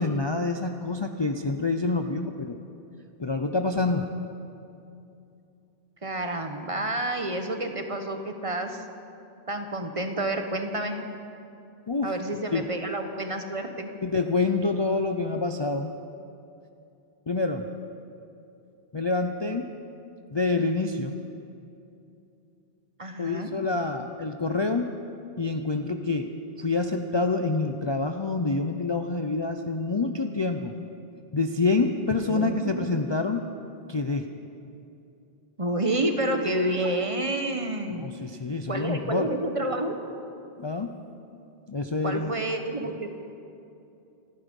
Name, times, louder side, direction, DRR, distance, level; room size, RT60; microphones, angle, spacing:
voice 1, 0.0-2.6 3.2-4.1 11.9-12.1 12.5-12.7 14.0-15.9 17.3-17.7 18.9-19.7 20.3-21.2 23.2-24.9 25.4-26.3 26.6-30.7 31.3-33.4 33.9-34.3 38.0-39.3 40.6-40.9 41.7-42.3, left 3 dB, 30° left, 5 dB, 0.5 m, -27 dB
voice 2, 6.0-8.8 9.5-11.0 12.0-13.9 23.0-23.5 32.2-32.9 35.6-38.1 38.7-40.0 42.0-43.2, right 1 dB, 30° right, 5 dB, 1.1 m, -29 dB
26.5 x 10.0 x 5.3 m, 2.7 s
omnidirectional pair, 1.1 m